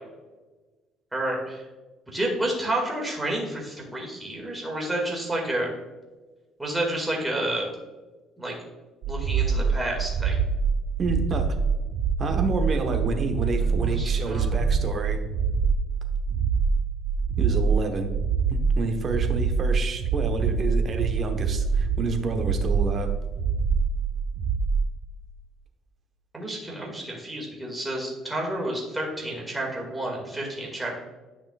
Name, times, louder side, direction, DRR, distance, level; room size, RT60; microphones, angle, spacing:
voice 1, 1.1-1.6 2.1-5.7 6.6-7.7 8.4-8.5 9.1-10.4 13.6-14.7 26.3-31.0, right 1 dB, 10° right, -2 dB, 2.1 m, -30 dB
sound 1, 9.0-24.9, right 5 dB, 65° right, 0.8 m, -25 dB
voice 2, 11.0-11.6 12.2-15.2 17.4-18.1 18.5-23.1, right 3 dB, 40° right, 5 dB, 1.1 m, -29 dB
10.0 x 5.8 x 2.4 m, 1.2 s
cardioid pair, 110°, 0 cm